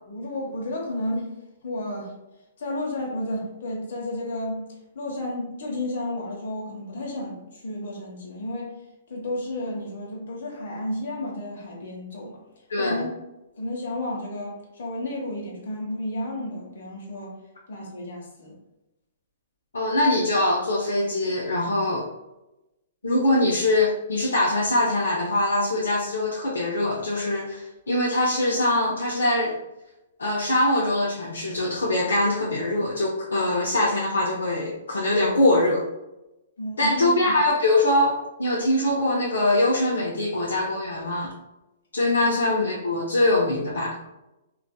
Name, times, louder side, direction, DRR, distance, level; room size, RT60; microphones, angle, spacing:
voice 1, 0.1-1.3 1.6-2.1 2.6-4.7 4.9-8.7 9.1-12.4 12.8-13.1 13.6-17.3 17.7-18.6 36.6-37.3, left 1 dB, 65° left, -1 dB, 0.9 m, -32 dB
voice 2, 12.7-13.0 19.7-22.1 23.0-29.6 30.2-35.8 36.8-41.3 41.9-44.0, left 1 dB, 85° left, -4 dB, 0.5 m, -23 dB
2.5 x 2.3 x 2.2 m, 0.94 s
hypercardioid pair, 130°, 0 cm